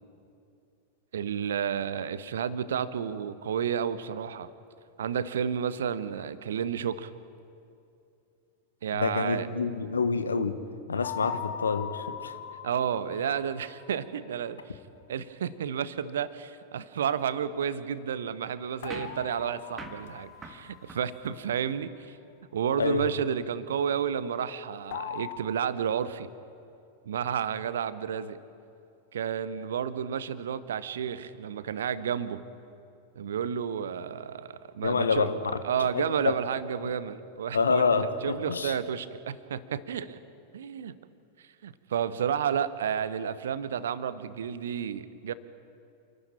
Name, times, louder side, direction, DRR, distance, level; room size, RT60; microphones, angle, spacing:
voice 1, 1.1-4.5 5.0-7.1 8.8-9.5 12.6-14.8 15.1-22.2 22.5-26.3 27.0-28.4 29.1-32.4 33.2-35.3 35.6-40.2 40.5-41.0 41.6-45.3, right 8 dB, 65° right, 15 dB, 0.9 m, -31 dB
voice 2, 8.9-10.6 10.9-12.3 22.8-23.1 34.8-35.3 35.9-36.0 37.5-38.8, left 5 dB, 75° left, 10 dB, 1.2 m, -27 dB
sound 1, 11.0-14.0 18.8-21.0 24.9-25.4, left 8 dB, 55° left, 1.1 m, -40 dB
sound 2, 18.9-21.8, right 3 dB, 15° right, 2.0 m, -46 dB
28.0 x 12.0 x 8.8 m, 2.6 s
figure-of-eight pair, 90°, 0 cm